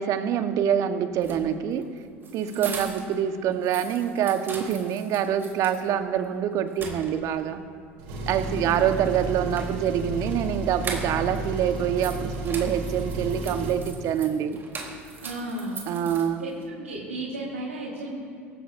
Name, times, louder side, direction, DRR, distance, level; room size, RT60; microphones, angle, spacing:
voice 1, 0.0-1.9 2.3-7.6 8.3-14.6 15.9-16.4, right 9 dB, 50° right, 8 dB, 1.3 m, -25 dB
sound 1, 1.1-3.2 3.5-5.9 6.2-6.3 6.7-7.5 9.1-11.4 11.7-16.6, right 4 dB, 30° right, 3.8 m, -40 dB
voice 2, 2.5-3.0 8.4-9.8 15.2-15.9 16.4-18.2, right 1 dB, 85° right, -7 dB, 4.4 m, -35 dB
Engine, 8.0-13.8, right 2 dB, 65° right, 3.3 m, -33 dB
26.0 x 14.5 x 2.7 m, 2.6 s
hypercardioid pair, 70°, 7 cm